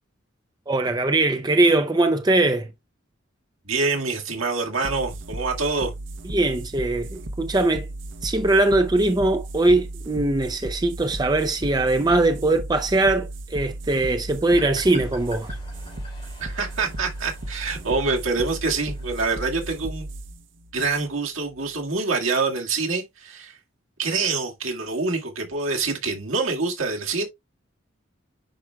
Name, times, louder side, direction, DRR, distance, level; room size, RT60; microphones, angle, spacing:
voice 1, 0.7-2.7 6.3-7.9 8.2-15.6, right 2 dB, 20° right, 0.5 m, -21 dB
voice 2, 3.7-5.9 16.4-20.1 20.7-23.6 24.0-27.3, right 4 dB, 80° right, 2.1 m, -26 dB
sound 1, 4.8-21.9, right 1 dB, 60° right, 0.8 m, -35 dB
sound 2, 14.4-19.4, left 1 dB, 30° left, 3.5 m, -46 dB
10.0 x 4.8 x 2.2 m
head